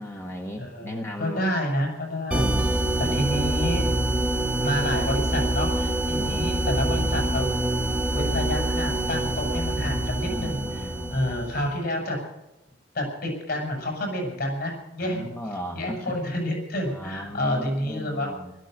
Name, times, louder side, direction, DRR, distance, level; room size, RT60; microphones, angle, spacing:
voice 1, 0.0-1.5 3.0-3.2 6.2-6.8 10.3-11.6 15.0-16.2 16.9-18.5, equal, 15° left, 2 dB, 1.4 m, -37 dB
voice 2, 0.6-2.5 3.0-3.9 4.6-7.5 8.1-10.8 11.1-12.2 12.9-15.3 15.7-18.4, left 1 dB, 55° left, 1 dB, 6.5 m, -29 dB
sound 1, 2.3-11.7, right 1 dB, 5° right, 1.7 m, -25 dB
16.5 x 13.5 x 6.5 m, 0.95 s
head